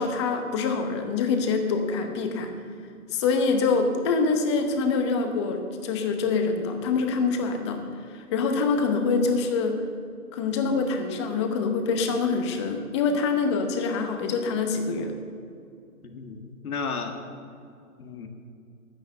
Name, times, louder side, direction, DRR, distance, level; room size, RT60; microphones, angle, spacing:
voice 1, 0.0-2.6 3.1-9.8 10.3-15.2, left 4 dB, 20° left, 5 dB, 0.9 m, -25 dB
voice 2, 16.0-17.2 18.0-18.3, left 5 dB, 70° left, 5 dB, 1.8 m, -33 dB
12.0 x 9.8 x 6.6 m, 2.4 s
hypercardioid pair, 150°, 45 cm